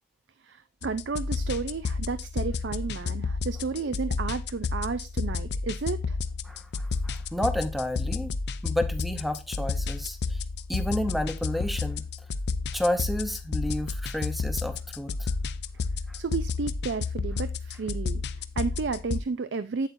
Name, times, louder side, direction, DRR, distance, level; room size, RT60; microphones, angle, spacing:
voice 1, 0.4-6.2 16.2-19.9, right 4 dB, 75° right, 0.5 m, -32 dB
sound 1, 0.8-19.2, left 4 dB, 60° left, 0.5 m, -31 dB
voice 2, 6.4-8.3 8.6-10.4 10.7-12.1 12.7-15.3 16.1-16.2, left 1 dB, ahead, 0.8 m, -31 dB
8.2 x 8.1 x 2.6 m
head